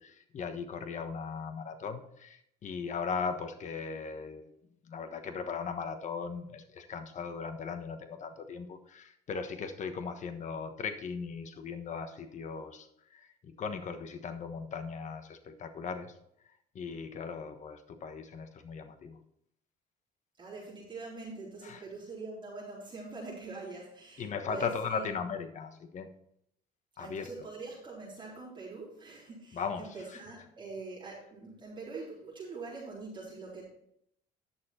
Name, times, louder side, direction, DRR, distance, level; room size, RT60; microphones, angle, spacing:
voice 1, 0.0-4.5 4.9-16.1 16.7-19.2 21.6-21.8 24.2-26.1 27.0-27.3 29.5-30.2, left 5 dB, 45° left, 7 dB, 1.2 m, -38 dB
voice 2, 20.4-25.1 27.0-33.7, right 3 dB, 30° right, -7 dB, 3.9 m, -44 dB
10.5 x 6.7 x 4.4 m, 0.73 s
cardioid pair, 110°, 17 cm